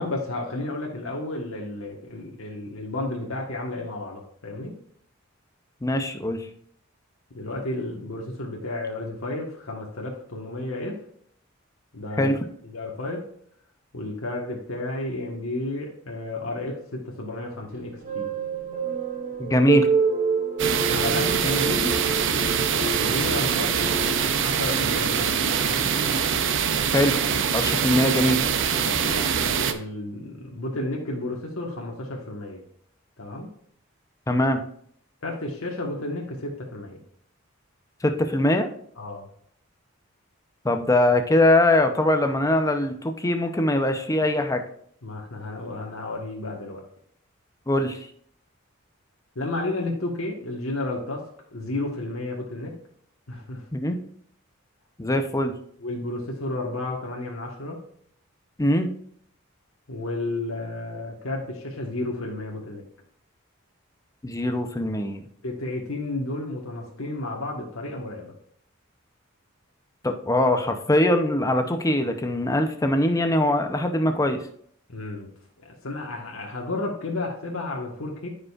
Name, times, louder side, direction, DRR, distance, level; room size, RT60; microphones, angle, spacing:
voice 1, 0.0-4.8 7.3-11.0 11.9-12.3 12.6-13.2 13.9-18.3 20.9-22.0 23.0-23.8 24.3-25.9 28.7-32.6 33.2-33.5 35.2-37.0 39.0-39.3 45.0-46.8 49.3-51.2 51.5-52.7 53.3-53.7 55.8-57.8 59.9-62.8 65.4-68.3 74.9-75.3 75.6-78.3, left 2 dB, 80° left, -1 dB, 1.3 m, -32 dB
voice 2, 5.8-6.5 12.2-12.4 19.4-19.9 26.9-27.2 27.5-28.4 34.3-34.6 38.0-38.7 40.6-44.6 47.7-48.0 53.7-54.0 55.0-55.5 58.6-58.9 64.2-65.3 70.0-74.4, left 1 dB, 15° left, 6 dB, 0.6 m, -22 dB
sound 1, 17.7-24.2, right 5 dB, 40° right, 1.7 m, -27 dB
sound 2, 20.6-29.7, right 7 dB, 60° right, 0.6 m, -24 dB
14.0 x 5.2 x 2.4 m, 0.65 s
head